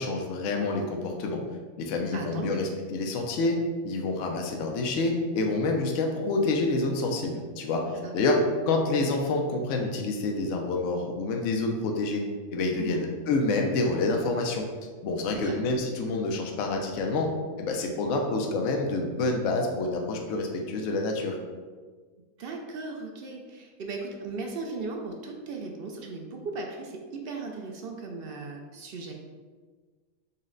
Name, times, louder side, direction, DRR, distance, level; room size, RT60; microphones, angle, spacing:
voice 1, 0.0-1.4 1.8-8.4 8.7-14.7 15.0-17.3 17.6-21.4, left 2 dB, 70° left, 2 dB, 0.9 m, -28 dB
voice 2, 2.1-2.6 8.0-8.2 12.8-13.0 15.3-15.6 22.4-29.1, right 3 dB, 70° right, 2 dB, 0.5 m, -37 dB
5.5 x 2.1 x 3.7 m, 1.5 s
omnidirectional pair, 1.5 m